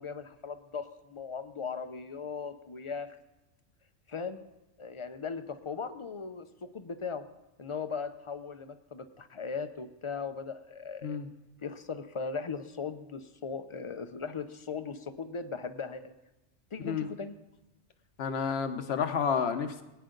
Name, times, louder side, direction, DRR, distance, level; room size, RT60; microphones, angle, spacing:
voice 1, 0.0-3.2 4.1-4.4 4.8-7.2 7.6-11.2 11.6-16.1 16.7-17.3, left 5 dB, 35° left, 10 dB, 0.5 m, -38 dB
voice 2, 18.2-19.8, left 6 dB, 60° left, 8 dB, 1.1 m, -30 dB
21.0 x 9.2 x 3.9 m, 0.99 s
omnidirectional pair, 1.2 m